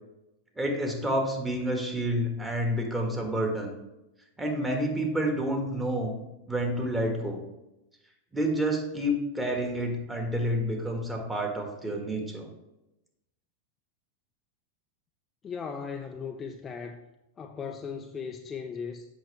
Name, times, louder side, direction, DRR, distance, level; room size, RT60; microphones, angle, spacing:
voice 1, 0.6-3.7 4.4-6.1 6.5-7.4 8.3-12.5, equal, 10° right, 1 dB, 1.7 m, -29 dB
voice 2, 15.4-17.0 17.4-19.1, left 6 dB, 25° left, 4 dB, 0.5 m, -37 dB
8.0 x 5.9 x 3.4 m, 0.95 s
hypercardioid pair, 95°, 0 cm